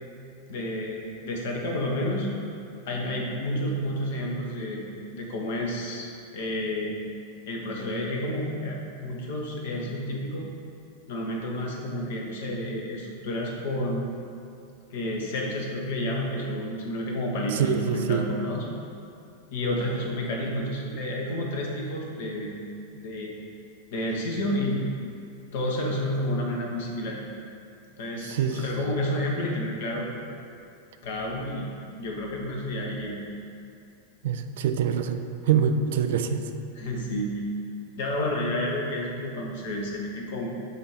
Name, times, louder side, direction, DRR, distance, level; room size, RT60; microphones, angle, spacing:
voice 1, 0.5-2.3 2.9-4.8 5.1-6.9 7.5-10.5 11.1-14.0 14.9-18.7 19.5-22.5 23.0-23.3 23.9-24.8 25.5-27.2 28.0-30.1 31.0-31.7 32.0-33.2 36.7-37.4 38.0-40.5, left 1 dB, 55° left, -1 dB, 1.0 m, -30 dB
voice 2, 17.6-18.3 28.2-28.5 34.2-35.2 35.5-36.4, right 7 dB, 55° right, 7 dB, 0.4 m, -24 dB
8.0 x 2.8 x 4.6 m, 2.5 s
figure-of-eight pair, 90°, 0 cm